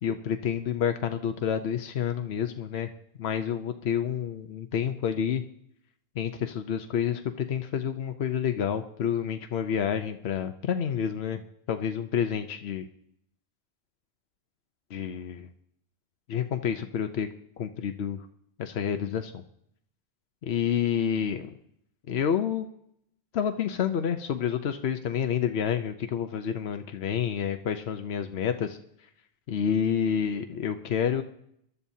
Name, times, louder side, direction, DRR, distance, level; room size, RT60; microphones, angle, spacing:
voice 1, 0.0-2.9 3.2-5.4 6.1-11.4 11.7-12.9 14.9-15.5 16.3-17.3 17.6-18.3 18.6-19.4 20.4-21.6 22.1-22.7 23.3-29.1 29.5-31.2, left 8 dB, 80° left, 7 dB, 1.0 m, -29 dB
23.0 x 12.5 x 2.8 m, 0.72 s
omnidirectional pair, 1.1 m